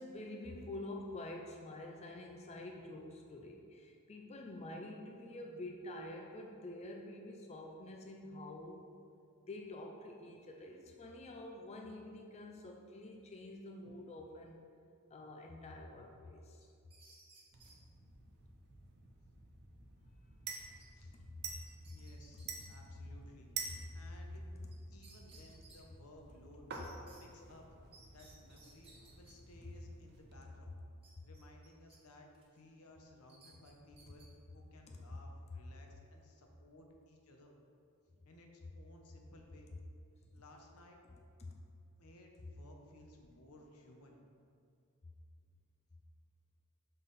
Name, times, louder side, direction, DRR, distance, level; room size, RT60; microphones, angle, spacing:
voice 1, 0.0-8.9 9.5-14.6 15.1-16.7 21.9-22.0 22.6-22.8 23.8-23.9 41.4-41.6, left 1 dB, 30° left, 2 dB, 0.4 m, -48 dB
sound 1, 16.6-17.8 20.5-20.9 21.2-21.3 21.7-22.7 24.7-24.8 25.0-25.8 26.7-27.2 27.9-29.3 31.0-32.0 32.3-32.6 33.3-34.3, right 3 dB, 25° right, 1.1 m, -62 dB
sound 2, 17.5-30.3, right 5 dB, 50° right, 0.8 m, -50 dB
voice 2, 21.9-23.5 23.9-24.4 24.9-26.8 27.2-27.6 28.1-28.9 29.1-30.7 31.2-34.2 34.5-37.6 38.2-39.7 40.3-41.0 42.0-44.2, left 1 dB, 75° left, 2 dB, 0.9 m, -59 dB
5.6 x 5.5 x 4.0 m, 2.4 s
head